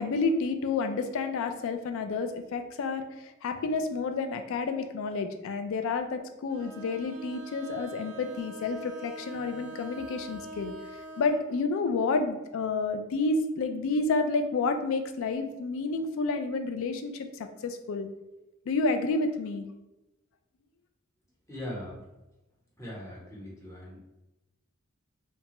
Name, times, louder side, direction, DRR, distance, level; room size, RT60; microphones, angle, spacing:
voice 1, 0.0-18.1 18.7-19.7, left 3 dB, 65° left, 7 dB, 0.3 m, -30 dB
Bowed string instrument, 6.5-11.5, right 1 dB, 65° right, 0.5 m, -43 dB
voice 2, 21.5-22.0 22.8-24.0, left 1 dB, 15° left, -6 dB, 0.8 m, -40 dB
2.8 x 2.2 x 2.9 m, 0.98 s
head